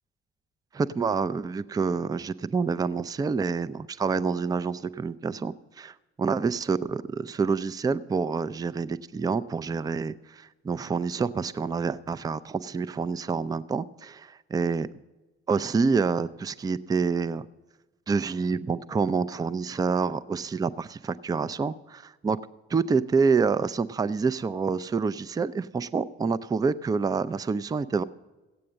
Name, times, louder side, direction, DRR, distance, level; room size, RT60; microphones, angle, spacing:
voice 1, 0.7-14.9 15.5-17.5 18.1-22.4 22.7-28.0, right 5 dB, 10° right, 15 dB, 0.4 m, -27 dB
16.0 x 8.5 x 6.3 m, 1.1 s
figure-of-eight pair, 45°, 33 cm